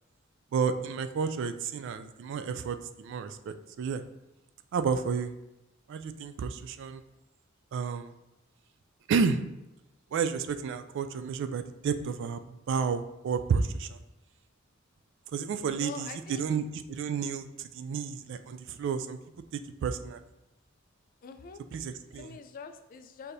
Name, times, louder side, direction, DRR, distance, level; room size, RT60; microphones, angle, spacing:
voice 1, 0.5-4.0 4.7-5.3 5.9-7.0 7.7-8.1 9.1-9.4 10.1-14.0 15.3-19.2 19.5-20.2 21.7-22.4, right 5 dB, 60° right, 10 dB, 0.3 m, -31 dB
voice 2, 15.8-16.4 21.2-21.6 22.2-23.3, left 5 dB, 45° left, 9 dB, 0.3 m, -44 dB
6.4 x 2.7 x 2.6 m, 0.92 s
head